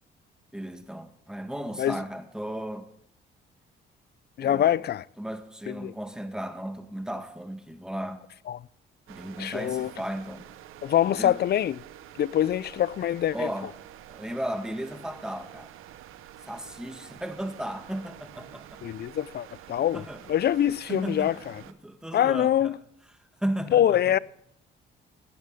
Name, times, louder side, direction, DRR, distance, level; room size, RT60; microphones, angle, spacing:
voice 1, 0.5-2.9 4.4-4.8 5.2-8.2 9.1-10.5 11.1-11.4 13.3-13.7 14.1-15.7 16.4-18.8 19.9-20.2 20.9-21.4 21.8-22.7 23.4-24.0, right 1 dB, 5° right, 1.6 m, -35 dB
voice 2, 4.4-5.0 5.7-5.9 8.5-8.6 9.4-9.9 10.8-11.8 12.2-13.5 18.8-21.6 22.1-22.8 23.7-24.2, left 11 dB, 50° left, 0.5 m, -24 dB
sound 1, 9.1-21.7, right 12 dB, 85° right, 0.8 m, -48 dB
18.0 x 10.5 x 3.7 m
cardioid pair, 85°, 21 cm